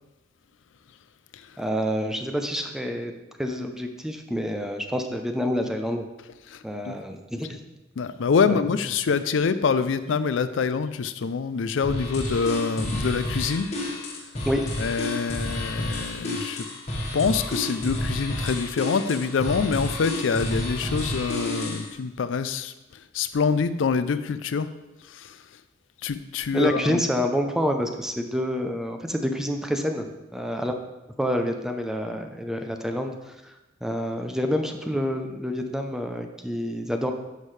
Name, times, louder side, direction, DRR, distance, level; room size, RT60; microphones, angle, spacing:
voice 1, 1.6-3.1 3.4-6.0 6.6-7.6 8.4-8.8 14.5-14.7 26.5-30.8 31.2-37.1, equal, 5° right, 5 dB, 0.6 m, -28 dB
voice 2, 8.0-13.7 14.8-16.6 17.1-22.7 23.1-24.7 25.1-25.3 26.0-27.0, left 5 dB, 80° left, 12 dB, 0.4 m, -25 dB
sound 1, 11.8-21.9, left 1 dB, 40° left, 1.5 m, -30 dB
9.6 x 6.5 x 3.3 m, 1.0 s
head